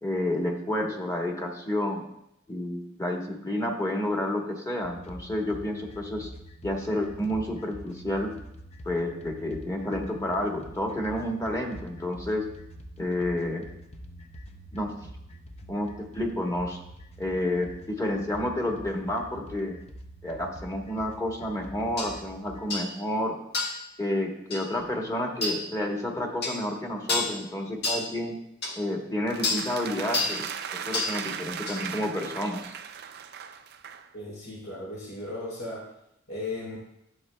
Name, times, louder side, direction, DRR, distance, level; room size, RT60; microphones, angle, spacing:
voice 1, 0.0-2.0 2.5-6.3 6.6-8.3 8.8-12.5 13.0-13.7 14.7-14.9 15.7-16.8 17.2-19.8 20.2-23.4 24.0-28.3 28.8-32.7, left 1 dB, 15° left, 1 dB, 1.1 m, -30 dB
sound 1, 4.8-22.7, equal, 30° left, 0.6 m, -46 dB
sound 2, 22.0-22.1 22.7-22.9 23.5-23.8 24.5-24.7 25.4-25.6 26.4-26.6 27.1-27.4 27.8-28.1 28.6-28.7 29.4-29.7 30.1-30.4 30.9-31.2 31.7-31.8, left 3 dB, 55° left, 1.3 m, -28 dB
sound 3, 29.3-34.1, right 8 dB, 55° right, 0.4 m, -38 dB
voice 2, 34.1-35.8 36.3-36.8, left 2 dB, 90° left, -6 dB, 3.3 m, -36 dB
11.5 x 7.8 x 2.2 m, 0.80 s
head